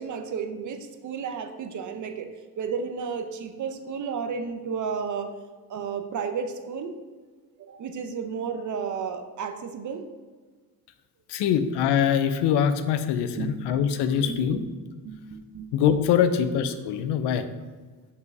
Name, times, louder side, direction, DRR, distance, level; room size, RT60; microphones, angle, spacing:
voice 1, 0.0-2.3 2.6-5.3 5.7-6.9 7.6-10.0 13.4-13.6 14.0-14.7 15.0-15.7, right 6 dB, 50° right, 7 dB, 0.7 m, -32 dB
voice 2, 11.3-14.6 15.7-17.4, left 8 dB, 90° left, 10 dB, 0.7 m, -23 dB
5.4 x 5.0 x 4.7 m, 1.4 s
cardioid pair, 130°, 39 cm